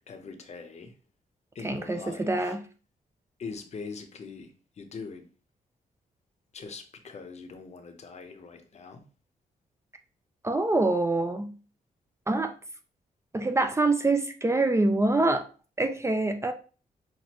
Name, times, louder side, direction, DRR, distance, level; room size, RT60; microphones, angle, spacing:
voice 1, 0.1-0.9 1.5-2.5 3.4-4.5 4.8-5.2 6.5-9.0, left 4 dB, 45° left, 0.8 m, -42 dB
voice 2, 1.6-2.6 10.4-11.5 12.3-12.5 13.3-15.5 15.8-16.5, right 2 dB, 20° right, 0.4 m, -25 dB
5.9 x 2.5 x 3.0 m
cardioid pair, 105°, 15 cm